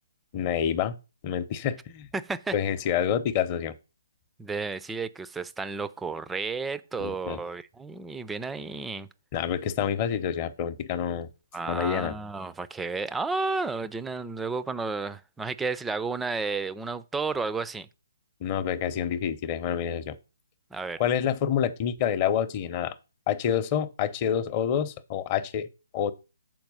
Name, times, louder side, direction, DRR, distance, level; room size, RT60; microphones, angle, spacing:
voice 1, 0.3-0.9 1.2-2.1 2.5-3.7 7.0-7.4 9.3-11.3 11.7-12.1 18.4-20.2 21.0-22.9 23.3-25.7 25.9-26.1, left 9 dB, 30° left, 0.8 m, -27 dB
voice 2, 2.1-2.5 4.4-9.1 11.5-17.9 20.7-21.0, right 4 dB, 5° right, 0.4 m, -32 dB
7.8 x 4.4 x 5.4 m
figure-of-eight pair, 140°, 0 cm